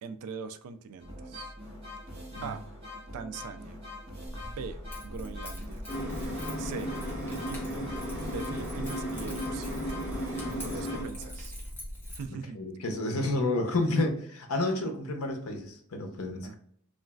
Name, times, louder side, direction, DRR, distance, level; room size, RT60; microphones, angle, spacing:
voice 1, 0.0-1.5 2.4-2.6 3.1-3.8 4.4-5.8 6.6-6.9 7.3-7.9 8.3-9.7 10.7-11.5 12.1-12.6 16.4-16.6, right 6 dB, 85° right, 10 dB, 0.3 m, -41 dB
sound 1, 1.0-11.6, left 1 dB, 25° right, 0.9 m, -44 dB
Keys jangling, 4.3-12.2, equal, 10° left, 0.6 m, -41 dB
sound 2, 5.9-11.0, equal, 5° right, 1.5 m, -35 dB
voice 2, 10.5-10.8 12.5-16.6, left 2 dB, 75° left, 4 dB, 0.6 m, -30 dB
3.1 x 2.4 x 2.2 m, 0.66 s
head